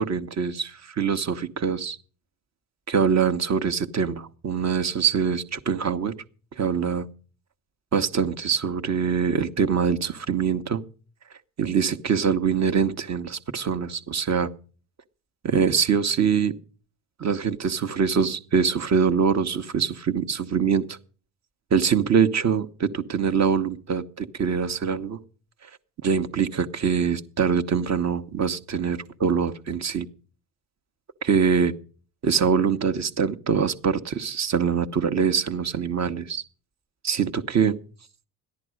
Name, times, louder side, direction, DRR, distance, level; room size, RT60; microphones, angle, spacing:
voice 1, 0.0-2.0 2.9-6.1 6.6-7.0 7.9-10.8 11.6-14.5 15.4-16.5 17.2-21.0 21.7-25.2 26.0-30.1 31.2-31.7 32.2-36.4 37.0-37.8, right 6 dB, 40° right, 8 dB, 1.2 m, -24 dB
14.5 x 10.5 x 6.4 m, 0.42 s
hypercardioid pair, 65°, 42 cm